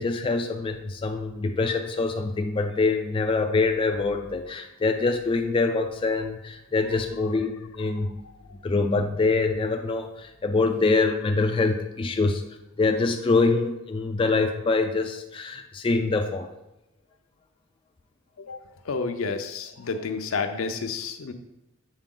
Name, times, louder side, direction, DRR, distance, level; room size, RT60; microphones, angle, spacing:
voice 1, 0.0-8.2 8.6-12.4 12.8-16.5, left 3 dB, 25° left, 4 dB, 0.3 m, -25 dB
voice 2, 18.4-21.3, left 4 dB, 70° left, 7 dB, 0.6 m, -30 dB
7.3 x 4.4 x 3.8 m, 0.92 s
head